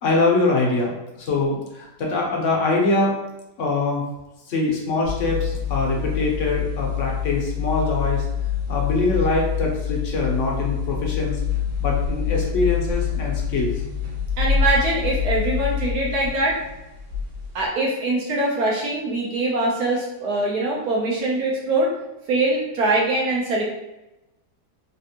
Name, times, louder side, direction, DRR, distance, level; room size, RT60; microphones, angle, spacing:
voice 1, 0.0-0.9 1.2-3.2 3.6-4.0 4.5-8.3 8.7-11.4 11.8-13.8, left 2 dB, 60° left, -1 dB, 0.9 m, -23 dB
sound 1, 5.0-17.7, left 8 dB, 90° right, 1.4 m, -26 dB
voice 2, 14.4-16.6 17.5-21.9 22.3-23.6, right 2 dB, 70° right, -3 dB, 1.2 m, -23 dB
3.4 x 2.4 x 2.8 m, 0.95 s
omnidirectional pair, 1.8 m